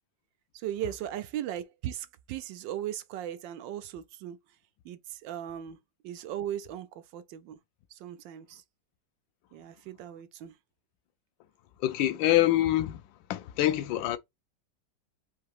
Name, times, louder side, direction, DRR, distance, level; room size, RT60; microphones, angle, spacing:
voice 1, 0.5-4.4 4.8-5.8 6.0-7.6 7.9-8.6 9.5-10.6, right 11 dB, 80° right, 1.3 m, -37 dB
voice 2, 11.8-13.0 13.3-14.2, left 14 dB, 85° left, 1.3 m, -25 dB
3.8 x 2.8 x 4.7 m
omnidirectional pair, 2.0 m